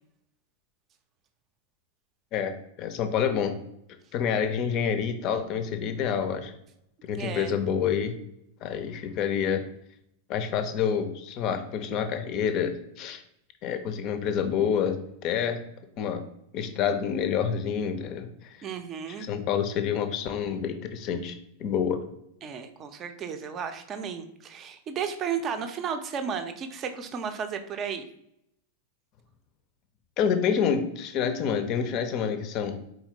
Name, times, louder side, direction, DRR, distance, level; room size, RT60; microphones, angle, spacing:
voice 1, 2.3-3.6 4.1-6.5 7.0-8.1 8.6-9.6 10.3-13.2 13.6-15.6 16.0-16.2 16.5-18.6 19.2-22.0 30.2-32.8, left 7 dB, 40° left, 9 dB, 0.6 m, -28 dB
voice 2, 7.1-7.5 18.6-19.3 22.4-28.1, right 7 dB, 30° right, 7 dB, 0.6 m, -33 dB
4.2 x 3.8 x 2.8 m, 0.77 s
figure-of-eight pair, 90°, 0 cm